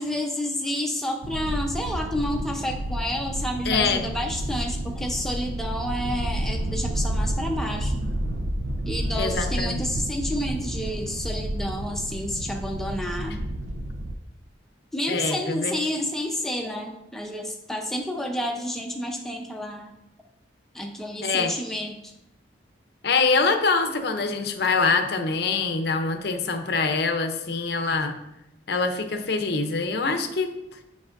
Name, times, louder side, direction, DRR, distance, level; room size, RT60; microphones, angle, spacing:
voice 1, 0.0-8.1 8.8-13.4 14.9-19.9 20.7-22.1, left 1 dB, ahead, 2 dB, 0.6 m, -30 dB
sound 1, 1.2-14.2, right 1 dB, 80° right, 0.6 m, -30 dB
voice 2, 3.6-4.0 9.2-9.9 15.1-15.7 21.2-21.6 23.0-28.2 28.7-30.5, left 4 dB, 55° left, 6 dB, 0.6 m, -24 dB
7.4 x 5.4 x 2.5 m, 0.86 s
head